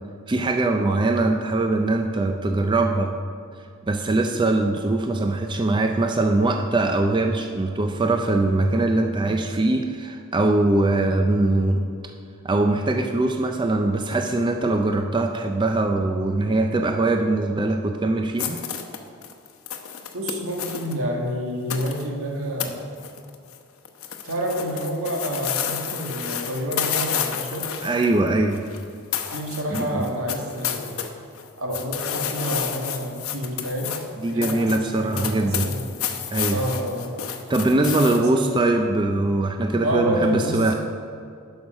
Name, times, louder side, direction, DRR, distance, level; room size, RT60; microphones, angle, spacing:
voice 1, 0.3-3.1 3.9-11.8 12.4-18.6 27.8-28.6 29.7-30.1 34.2-35.7 36.3-36.6 37.5-40.7, right 2 dB, 20° right, 4 dB, 0.4 m, -22 dB
sound 1, 18.4-20.9 21.7-22.0 22.6-22.7 23.0-23.6 23.9-28.8 29.1-31.1 31.3-38.2, left 8 dB, 80° left, 0.9 m, -30 dB
voice 2, 20.1-22.8 24.2-27.7 29.3-31.0 31.6-33.9 34.3-35.9 36.5-37.0 37.9-38.6 39.8-40.7, equal, 80° right, 0 dB, 1.8 m, -28 dB
10.5 x 5.5 x 6.4 m, 2.3 s
head